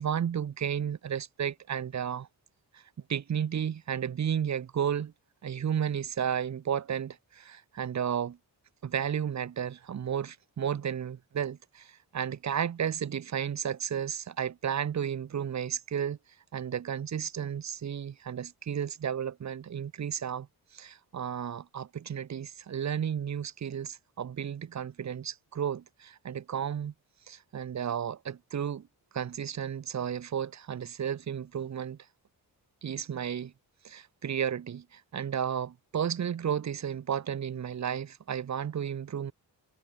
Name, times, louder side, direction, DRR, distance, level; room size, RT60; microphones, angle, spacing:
voice 1, 0.0-2.3 2.7-2.8 3.1-5.1 5.4-8.4 8.8-16.2 16.5-20.5 20.7-26.9 27.3-28.9 29.1-32.0 32.8-33.5 33.8-39.3, right 8 dB, 45° right, 0.7 m, -33 dB
cardioid pair, 60°, 41 cm